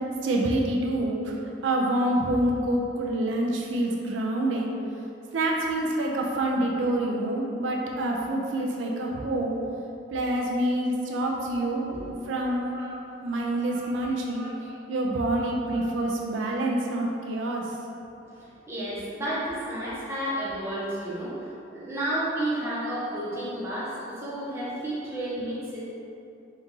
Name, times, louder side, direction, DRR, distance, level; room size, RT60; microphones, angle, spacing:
voice 1, 0.2-1.3 1.6-4.7 5.3-9.6 10.1-11.8 12.3-12.6 13.2-14.5 14.9-17.6, right 1 dB, 85° right, -1 dB, 0.4 m, -26 dB
voice 2, 11.0-12.0 12.7-13.0 13.7-14.8 15.4-15.8 18.3-25.8, right 1 dB, 15° right, -9 dB, 0.9 m, -33 dB
4.0 x 2.5 x 3.7 m, 2.7 s
head